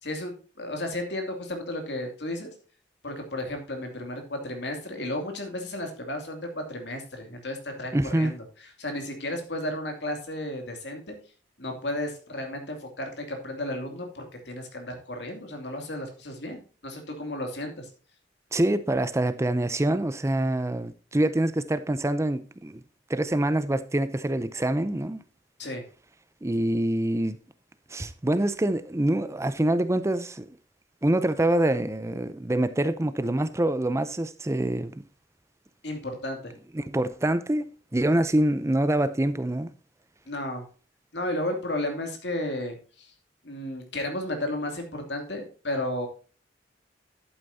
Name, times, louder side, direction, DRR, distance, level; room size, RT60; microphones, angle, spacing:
voice 1, 0.0-2.5 3.0-8.4 8.8-11.1 11.6-17.9 25.6-25.8 35.8-36.5 40.3-40.6 41.1-43.1 43.4-46.1, left 1 dB, 70° left, 2.7 m, -33 dB
voice 2, 7.9-8.3 18.5-22.8 23.1-25.2 26.4-27.4 27.9-30.5 31.0-35.0 36.7-37.6 37.9-39.7, right 1 dB, 15° right, 0.5 m, -25 dB
11.0 x 8.9 x 2.8 m
head